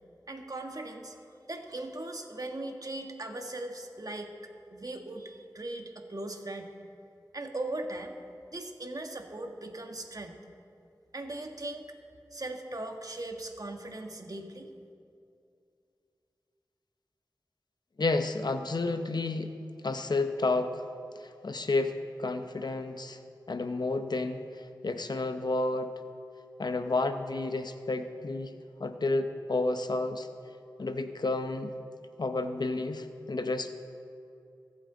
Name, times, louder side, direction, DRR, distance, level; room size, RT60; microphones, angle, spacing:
voice 1, 0.3-1.2 1.5-4.3 4.7-6.7 7.3-8.2 8.5-10.4 11.1-11.9 12.3-14.7, right 2 dB, 50° right, 4 dB, 1.5 m, -39 dB
voice 2, 18.0-19.5 19.8-20.9 21.2-23.2 23.5-24.4 24.8-25.9 26.6-28.5 28.8-30.3 30.8-31.7 32.2-33.7, left 2 dB, 65° left, 8 dB, 0.8 m, -31 dB
24.0 x 8.8 x 3.9 m, 2.5 s
cardioid pair, 40°, 8 cm